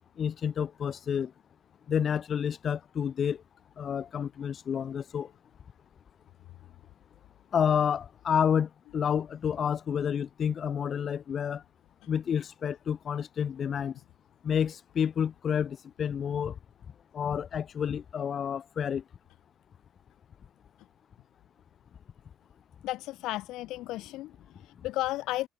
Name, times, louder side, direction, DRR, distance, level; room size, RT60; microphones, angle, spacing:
voice 1, 0.2-1.3 1.9-3.4 3.8-5.3 7.5-11.6 12.1-13.9 14.4-16.5 17.1-19.0, left 8 dB, 50° left, 4.0 m, -29 dB
voice 2, 22.8-25.5, left 17 dB, 80° left, 3.6 m, -34 dB
supercardioid pair, 75°, 0 cm